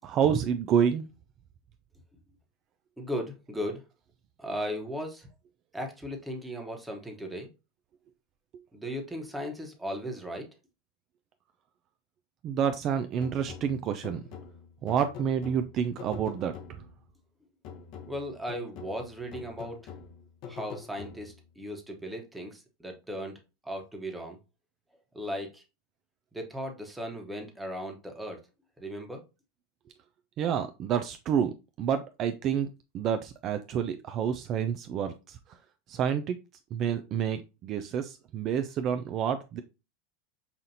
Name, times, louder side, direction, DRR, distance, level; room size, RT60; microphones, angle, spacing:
voice 1, 0.0-1.1 12.4-14.2 14.8-16.5 30.4-32.7 32.9-35.4 35.9-36.4 36.7-39.6, right 8 dB, 45° right, 9 dB, 0.4 m, -28 dB
voice 2, 3.0-3.8 4.4-5.3 5.7-7.5 8.7-10.5 18.1-19.9 20.5-24.4 25.1-25.6 26.3-28.4 28.8-29.3, equal, 5° right, 3 dB, 1.1 m, -37 dB
sound 1, 13.2-17.1 17.6-21.5, left 7 dB, 55° left, 0.8 m, -46 dB
5.6 x 2.5 x 2.7 m, 0.27 s
hypercardioid pair, 100°, 0 cm